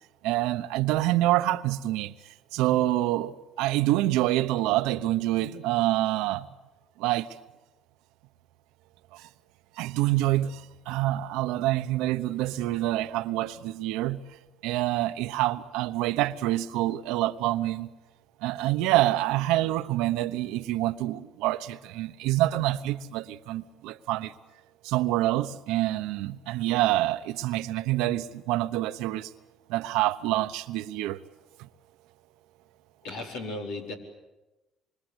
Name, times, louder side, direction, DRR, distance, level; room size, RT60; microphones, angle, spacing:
voice 1, 0.2-6.5 7.0-7.3 9.1-9.3 9.8-17.9 18.4-24.3 24.8-29.3 29.7-31.2 31.6-31.7, right 15 dB, 85° right, 1.0 m, -27 dB
voice 2, 33.0-33.9, left 2 dB, 85° left, 4.7 m, -35 dB
26.0 x 24.5 x 8.1 m
supercardioid pair, 85°, 0 cm